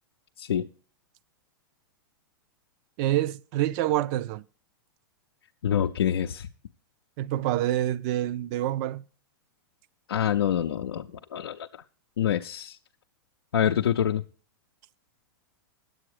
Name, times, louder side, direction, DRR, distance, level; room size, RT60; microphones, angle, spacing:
voice 1, 3.0-4.4 7.2-9.0, right 13 dB, 50° right, 0.5 m, -27 dB
voice 2, 5.6-6.5 10.1-11.7 12.2-12.8 13.5-14.2, left 9 dB, 85° left, 0.5 m, -26 dB
9.9 x 7.9 x 4.8 m
hypercardioid pair, 115°, 12 cm